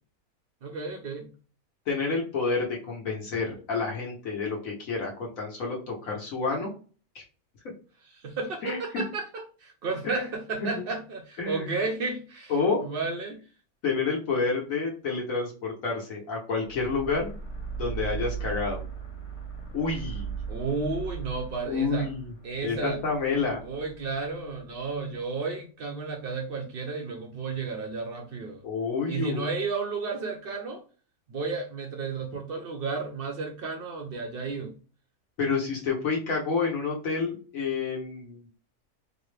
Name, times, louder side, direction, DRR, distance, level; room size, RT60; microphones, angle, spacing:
voice 1, 0.6-1.3 8.0-12.5 12.8-13.4 20.5-22.1 22.4-23.0 23.6-28.6 29.1-30.8 31.3-34.7, right 4 dB, 60° right, 0.6 m, -32 dB
voice 2, 1.9-6.7 8.6-8.8 10.0-10.3 10.6-10.8 11.4-11.7 12.5-12.8 13.8-17.3 17.8-18.8 19.7-20.3 21.7-22.3 22.6-23.6 28.6-29.4 35.4-38.4, left 4 dB, 65° left, 1.3 m, -29 dB
sound 1, 16.6-24.9, right 6 dB, 30° left, 0.6 m, -38 dB
4.0 x 2.0 x 3.1 m
omnidirectional pair, 1.6 m